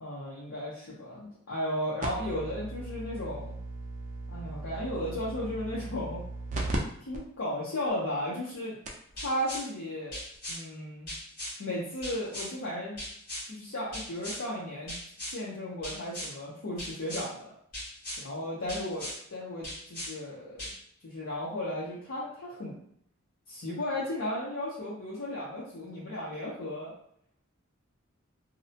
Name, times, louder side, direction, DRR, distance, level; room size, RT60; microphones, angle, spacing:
voice 1, 0.0-3.6 4.3-6.2 7.0-8.8 9.1-10.2 10.5-11.1 11.6-13.0 13.5-14.9 15.3-17.5 18.2-20.7 21.0-22.8 23.5-26.9, left 1 dB, 70° left, -7 dB, 0.6 m, -35 dB
sound 1, 2.0-6.8 7.1-7.2 7.9-8.0 8.5-8.6 8.9-9.1 10.3-10.4, right 2 dB, 35° right, 0.4 m, -37 dB
sound 2, 9.2-9.6 10.1-10.6 11.1-11.5 12.0-12.5 13.0-13.4 13.9-14.4 14.9-15.4 15.8-16.3 16.8-17.3 17.7-18.2 18.7-19.2 19.6-20.1 20.6-20.7, left 1 dB, 40° left, 1.4 m, -38 dB
2.6 x 2.1 x 2.7 m, 0.67 s
head